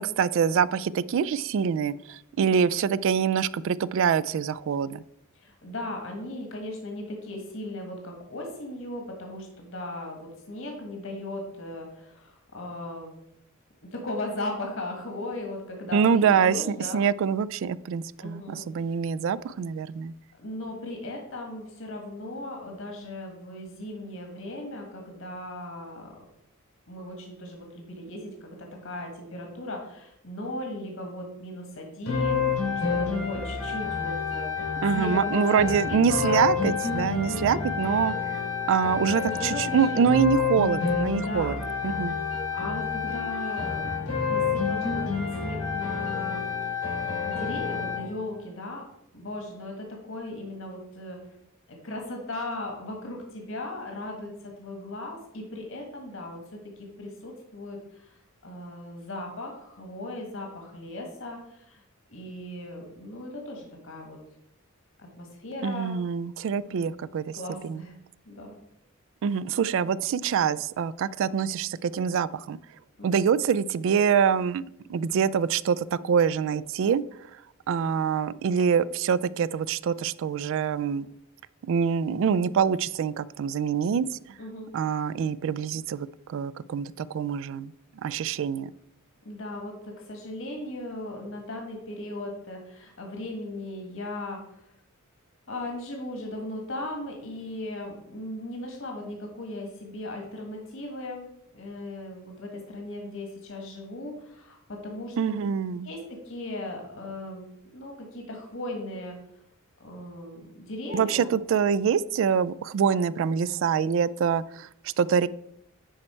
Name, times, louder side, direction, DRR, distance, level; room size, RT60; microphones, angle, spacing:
voice 1, 0.0-5.0 15.9-20.1 34.8-38.1 38.7-41.6 41.8-42.2 65.6-67.4 67.6-67.8 69.2-72.6 73.0-74.6 74.9-77.0 77.7-81.1 81.7-84.0 84.7-87.7 88.0-88.7 105.2-105.9 110.9-115.3, right 7 dB, 65° right, 0.3 m, -25 dB
voice 2, 5.3-13.1 13.8-17.0 18.2-18.6 18.9-19.0 20.3-26.1 26.9-34.5 34.9-36.4 37.2-37.7 39.2-40.0 41.2-41.6 42.5-46.4 47.2-48.9 49.1-51.2 51.7-58.2 58.4-61.8 62.1-64.2 65.0-65.9 66.6-66.9 67.3-68.0 68.2-68.5 73.0-73.2 84.4-84.7 89.2-94.6 95.5-101.3 101.5-105.2 105.8-109.2 109.8-111.3, left 1 dB, 65° left, 1.6 m, -37 dB
sound 1, 32.1-48.1, left 5 dB, 90° left, 2.8 m, -29 dB
10.0 x 4.4 x 4.4 m
head